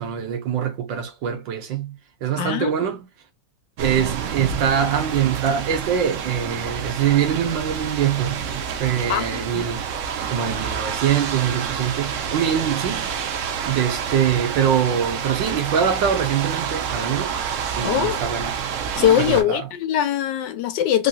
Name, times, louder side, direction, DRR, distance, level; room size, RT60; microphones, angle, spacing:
voice 1, 0.0-3.1 3.8-9.9 10.3-13.1 13.6-17.3 17.8-18.6 19.2-19.7, right 8 dB, 85° right, 1.6 m, -23 dB
voice 2, 2.4-2.7 9.1-9.6 17.8-18.2 19.0-21.1, left 10 dB, 80° left, 1.2 m, -21 dB
sound 1, 3.8-19.4, right 7 dB, 70° right, 0.7 m, -28 dB
3.7 x 2.7 x 2.3 m
omnidirectional pair, 1.9 m